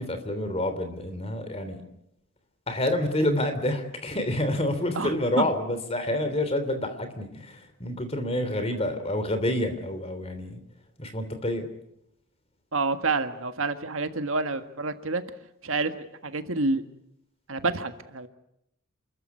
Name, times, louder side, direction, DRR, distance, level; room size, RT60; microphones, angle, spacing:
voice 1, 0.0-1.8 2.7-10.6 11.0-11.7, left 1 dB, 30° left, 9 dB, 3.2 m, -28 dB
voice 2, 5.0-5.5 12.7-15.2 15.6-15.9 16.2-16.8 17.5-18.3, right 3 dB, 75° right, 8 dB, 1.7 m, -28 dB
28.5 x 14.0 x 9.6 m, 0.80 s
head